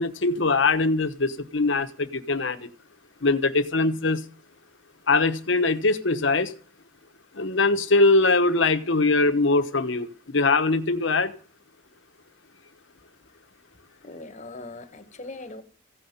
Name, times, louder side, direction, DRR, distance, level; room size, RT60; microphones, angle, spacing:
voice 1, 0.0-2.7 3.2-4.2 5.1-6.5 7.3-11.3, left 3 dB, 70° left, 1.2 m, -22 dB
voice 2, 14.0-15.6, left 2 dB, 35° left, 1.5 m, -40 dB
15.5 x 5.7 x 9.2 m
head